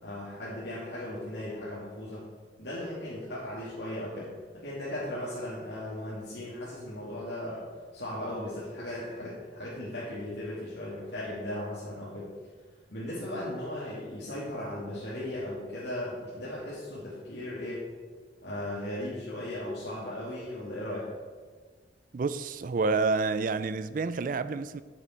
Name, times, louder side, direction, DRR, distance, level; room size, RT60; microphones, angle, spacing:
voice 1, 0.0-2.2 2.6-12.3 12.9-17.9 18.4-21.1, left 1 dB, 75° left, 2.4 m, -37 dB
voice 2, 22.1-24.8, right 4 dB, 50° right, 0.4 m, -29 dB
9.5 x 7.3 x 4.5 m
head